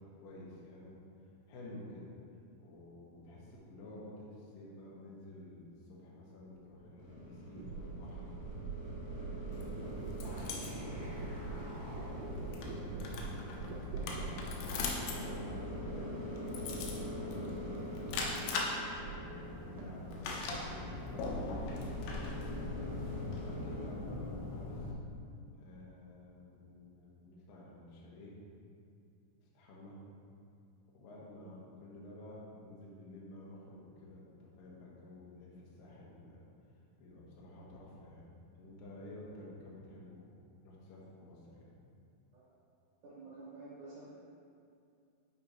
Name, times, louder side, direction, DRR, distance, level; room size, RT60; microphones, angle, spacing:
voice 1, 0.0-8.3 9.1-9.8 10.3-14.5 15.0-18.4 18.9-22.7 23.3-25.0 25.5-28.4 29.4-30.0 30.9-36.4 36.7-38.3 38.6-40.3 40.6-41.7, left 1 dB, 70° left, -5 dB, 2.5 m, -51 dB
sound 1, 6.8-6.9 7.6-17.2 17.5-18.4 18.7-19.5 19.8-20.3, right 5 dB, 85° right, 2.1 m, -45 dB
sound 2, 7.0-23.9, equal, 50° left, 2.1 m, -45 dB
sound 3, 9.5-24.9, left 3 dB, 90° left, 2.8 m, -41 dB
voice 2, 43.0-44.1, right 3 dB, 60° right, -10 dB, 2.3 m, -50 dB
8.8 x 4.5 x 3.1 m, 2.5 s
omnidirectional pair, 4.8 m